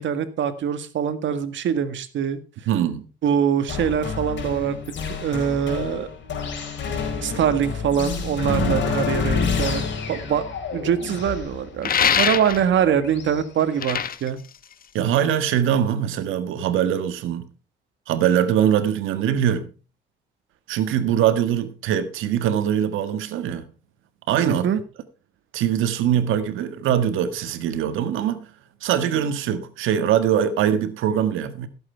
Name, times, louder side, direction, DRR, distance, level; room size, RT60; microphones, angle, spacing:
voice 1, 0.0-2.4 3.2-4.8 5.1-6.1 7.2-9.8 10.1-10.4 10.7-14.4 24.4-24.8, right 8 dB, 70° right, 1.7 m, -23 dB
voice 2, 2.7-3.1 8.4-8.8 14.9-17.5 18.1-19.7 20.7-23.7 24.3-24.6 25.5-28.5 28.8-31.7, right 9 dB, 90° right, 1.6 m, -22 dB
sound 1, 3.7-13.4, left 5 dB, 65° left, 4.1 m, -29 dB
chains effect, 11.8-12.8 13.6-15.3, left 8 dB, 45° left, 0.9 m, -23 dB
15.5 x 8.0 x 4.5 m
cardioid pair, 90°, 20 cm